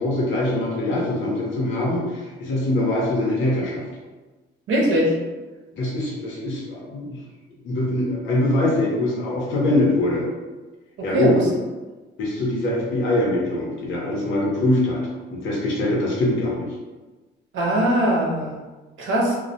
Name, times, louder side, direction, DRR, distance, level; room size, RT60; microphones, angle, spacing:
voice 1, 0.0-3.8 5.7-7.2 7.6-10.3 11.0-11.3 12.2-15.0 15.3-16.7, left 1 dB, 80° left, -3 dB, 0.8 m, -23 dB
voice 2, 4.7-5.1 11.0-11.4 17.5-18.5 19.0-19.4, right 1 dB, 75° right, -2 dB, 0.7 m, -20 dB
2.2 x 2.1 x 2.6 m, 1.2 s
cardioid pair, 90°, 20 cm